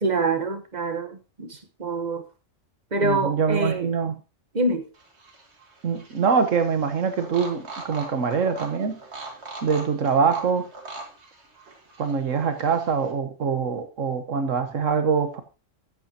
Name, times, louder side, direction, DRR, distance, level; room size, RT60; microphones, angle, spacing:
voice 1, 0.0-2.3 2.9-3.9 4.5-4.9, right 2 dB, 35° right, 1.3 m, -26 dB
voice 2, 3.0-4.2 5.8-9.0 9.3-10.7 12.0-15.4, right 6 dB, 75° right, 1.5 m, -24 dB
sound 1, 4.9-13.1, right 3 dB, 60° right, 2.0 m, -42 dB
13.0 x 8.6 x 2.9 m
omnidirectional pair, 1.3 m